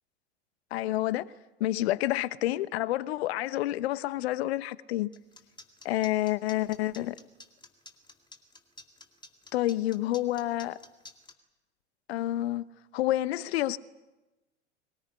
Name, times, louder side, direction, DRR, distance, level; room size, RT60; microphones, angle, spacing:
voice 1, 0.7-1.3 1.6-5.1 5.8-7.1 9.5-10.8 12.1-12.7 12.9-13.8, left 15 dB, 65° left, 1.0 m, -29 dB
sound 1, 5.1-11.3, left 3 dB, 15° left, 2.2 m, -50 dB
23.0 x 19.5 x 10.0 m
figure-of-eight pair, 85°, 34 cm